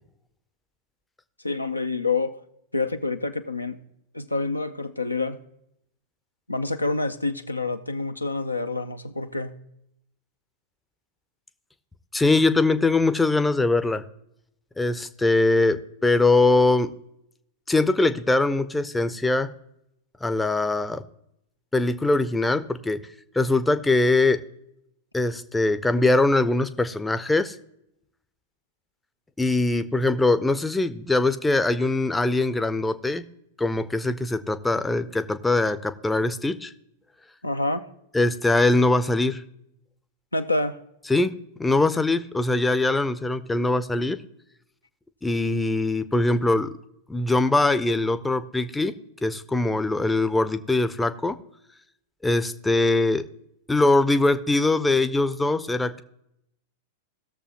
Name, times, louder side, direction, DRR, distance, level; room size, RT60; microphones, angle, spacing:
voice 1, 1.4-2.4 2.7-3.8 4.1-5.4 6.5-9.5 37.4-37.9 40.3-40.8, left 3 dB, 90° left, 0.6 m, -27 dB
voice 2, 12.1-14.0 14.8-16.9 17.7-19.5 20.2-21.0 21.7-23.0 23.3-24.4 25.1-27.6 29.4-33.2 33.6-36.7 38.1-39.4 41.1-41.3 41.6-44.2 45.2-46.7 47.1-48.9 49.2-51.4 52.2-53.2 53.7-56.0, left 2 dB, 10° left, 0.6 m, -22 dB
18.0 x 6.8 x 2.9 m
figure-of-eight pair, 95°, 0 cm